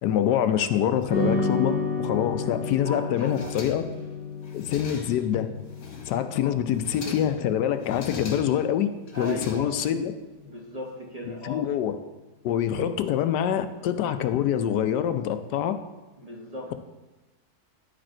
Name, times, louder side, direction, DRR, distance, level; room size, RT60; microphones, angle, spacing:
voice 1, 0.0-3.8 4.5-5.5 6.1-8.9 9.2-10.1 11.3-11.9 12.4-15.8, left 10 dB, 80° left, 9 dB, 1.1 m, -25 dB
sound 1, 1.1-9.6, left 3 dB, 70° right, 3.4 m, -33 dB
voice 2, 2.8-3.7 6.4-6.6 9.1-9.7 10.4-11.7 16.2-16.7, left 1 dB, 30° right, -2 dB, 0.9 m, -37 dB
sound 2, 3.2-4.1 4.4-5.3 5.7-6.3 6.7-7.4 7.8-8.7 9.1-10.0, left 4 dB, 55° left, 1.1 m, -41 dB
10.5 x 5.1 x 4.4 m, 1.1 s
omnidirectional pair, 1.8 m